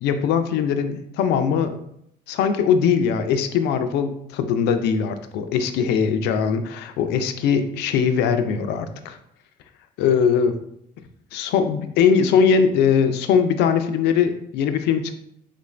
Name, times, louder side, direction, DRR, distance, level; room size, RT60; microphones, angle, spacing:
voice 1, 0.0-1.8 2.3-9.2 10.0-10.6 11.3-15.2, left 7 dB, 80° left, 8 dB, 0.4 m, -21 dB
3.7 x 2.4 x 3.1 m, 0.74 s
cardioid pair, 110°, 17 cm